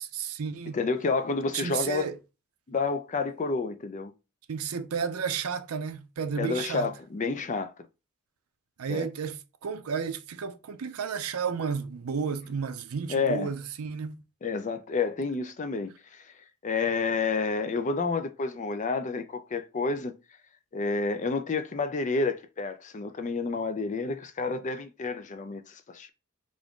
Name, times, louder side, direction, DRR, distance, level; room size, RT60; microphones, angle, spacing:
voice 1, 0.0-0.8 1.5-2.2 4.5-6.9 8.8-14.2, right 6 dB, 75° right, 0.5 m, -32 dB
voice 2, 0.7-2.1 2.7-4.1 6.4-7.7 8.9-9.1 13.1-13.5 14.4-16.2 16.6-20.1 20.7-26.1, left 4 dB, 35° left, 0.5 m, -29 dB
3.6 x 2.6 x 3.5 m
head